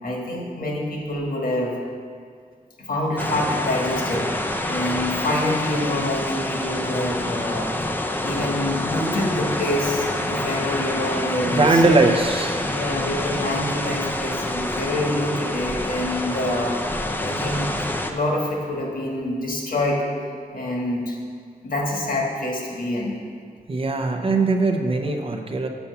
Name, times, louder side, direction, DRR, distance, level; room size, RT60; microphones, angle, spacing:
voice 1, 0.0-1.8 2.8-4.3 4.7-7.9 8.2-11.8 12.6-16.7 17.2-17.7 18.1-20.0 20.5-21.2 21.6-23.2, left 1 dB, 70° left, -1 dB, 1.5 m, -26 dB
sound 1, 3.2-18.1, left 1 dB, 10° left, 0.4 m, -27 dB
voice 2, 11.5-12.6 23.7-25.7, right 3 dB, 35° right, 4 dB, 0.6 m, -20 dB
7.0 x 5.5 x 6.8 m, 2.2 s
wide cardioid pair, 155°, 16 cm